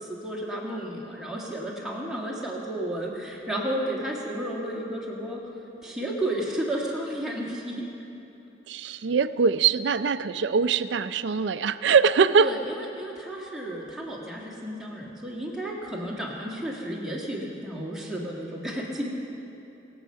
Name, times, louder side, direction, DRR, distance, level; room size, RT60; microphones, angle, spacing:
voice 1, 0.0-5.4 5.8-7.9 8.8-9.0 12.4-19.1, right 1 dB, 5° right, -4 dB, 1.9 m, -32 dB
voice 2, 8.7-12.5, right 5 dB, 75° right, 13 dB, 0.4 m, -22 dB
23.5 x 8.0 x 5.7 m, 2.8 s
head